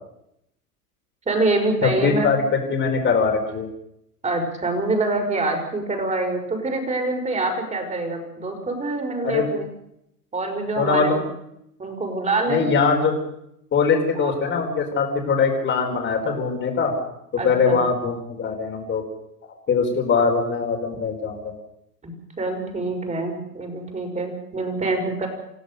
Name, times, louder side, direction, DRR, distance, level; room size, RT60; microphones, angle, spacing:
voice 1, 1.3-2.3 4.2-9.7 10.3-11.2 11.8-12.7 14.1-14.3 17.4-17.9 22.0-25.3, right 2 dB, 15° right, 3 dB, 5.6 m, -25 dB
voice 2, 1.8-2.4 2.7-3.7 9.2-9.5 10.8-11.2 12.5-13.1 13.7-16.9 17.4-19.0 19.4-21.5, left 5 dB, 25° left, 1 dB, 4.7 m, -22 dB
27.5 x 16.0 x 6.7 m, 0.79 s
hypercardioid pair, 100°, 48 cm